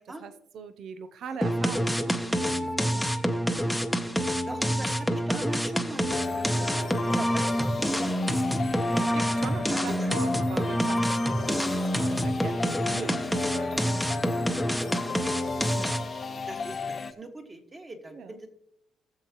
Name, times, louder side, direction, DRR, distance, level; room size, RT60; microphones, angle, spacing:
voice 1, 0.0-3.1 6.7-7.3 8.9-11.6 11.9-14.6 15.7-16.5 18.1-18.4, right 6 dB, 70° right, 12 dB, 0.6 m, -41 dB
voice 2, 1.3-1.6 3.4-4.0 4.4-9.2 9.7-10.1 11.4-11.6 12.9-13.3 14.9-15.8 16.4-18.5, right 2 dB, 30° right, 4 dB, 1.9 m, -42 dB
sound 1, 1.4-16.2, equal, ahead, 0.9 m, -27 dB
sound 2, 6.1-17.1, left 5 dB, 40° left, 0.8 m, -35 dB
18.5 x 7.3 x 3.0 m, 0.76 s
cardioid pair, 90°, 0 cm